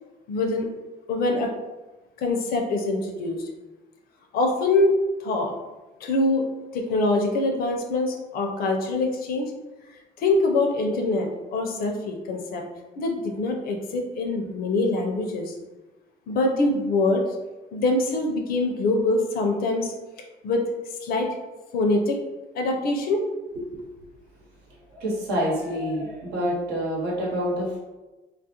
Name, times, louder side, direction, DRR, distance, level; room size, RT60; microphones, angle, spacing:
voice 1, 0.3-0.7 1.1-1.5 2.2-3.5 4.3-4.9 5.2-5.5 6.0-6.5 6.7-9.5 10.2-12.6 13.0-15.5 16.3-17.3 17.7-19.9 20.4-20.6 21.0-21.3 21.7-22.2 22.5-23.2, left 2 dB, 60° left, 3 dB, 0.5 m, -24 dB
voice 2, 24.9-27.8, equal, 85° right, -5 dB, 1.0 m, -27 dB
2.3 x 2.0 x 2.8 m, 1.1 s
cardioid pair, 110°, 17 cm